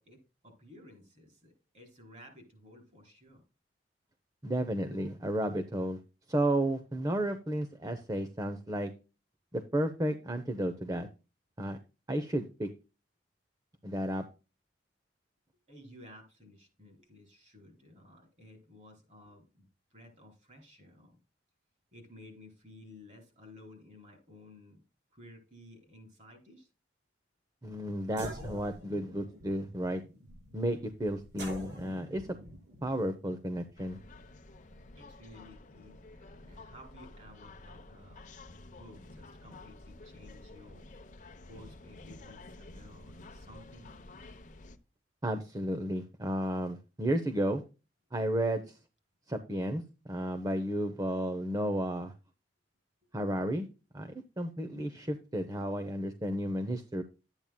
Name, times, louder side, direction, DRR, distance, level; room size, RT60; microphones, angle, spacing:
voice 1, 0.0-3.4 15.7-21.1 21.9-24.8 25.1-26.7 35.0-40.9 41.4-43.9 54.1-54.2, left 1 dB, 40° right, 3 dB, 4.5 m, -55 dB
voice 2, 4.4-6.0 6.3-8.9 9.5-11.1 11.6-11.8 12.1-12.7 13.8-14.2 27.6-30.0 30.5-32.4 32.8-34.0 45.2-47.6 48.1-48.8 49.3-52.1 53.1-53.7 53.9-57.0, right 1 dB, 20° right, 8 dB, 0.7 m, -32 dB
sound 1, 27.7-27.8 28.1-34.9, equal, 70° right, 5.5 m, -47 dB
sound 2, 33.8-44.8, left 2 dB, 45° left, 0.9 m, -51 dB
12.0 x 8.8 x 2.2 m, 0.31 s
head